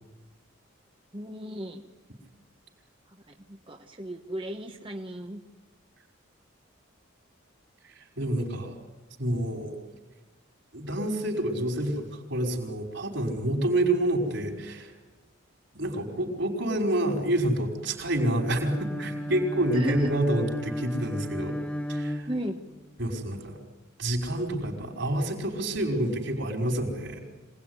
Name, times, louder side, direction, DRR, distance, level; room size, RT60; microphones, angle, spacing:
voice 1, 1.1-1.8 3.1-3.2 3.5-5.4 19.7-20.1 22.3-22.6, right 1 dB, 25° right, 3 dB, 1.2 m, -35 dB
voice 2, 8.0-8.8 9.2-9.8 10.7-14.9 15.7-21.6 21.9-22.3 23.0-23.6 24.0-27.2, right 1 dB, 60° right, 3 dB, 5.1 m, -28 dB
Bowed string instrument, 18.3-22.9, equal, 5° left, 1.8 m, -34 dB
25.5 x 19.5 x 9.7 m, 1.2 s
head